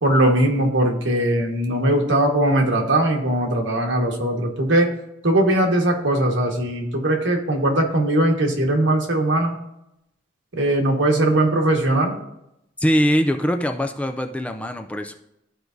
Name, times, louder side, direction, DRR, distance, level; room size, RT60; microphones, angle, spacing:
voice 1, 0.0-4.9 5.2-9.6 10.6-12.2, right 1 dB, 70° right, 2 dB, 1.4 m, -20 dB
voice 2, 12.8-15.1, equal, 5° left, 6 dB, 0.3 m, -22 dB
13.0 x 4.6 x 2.6 m, 0.82 s
head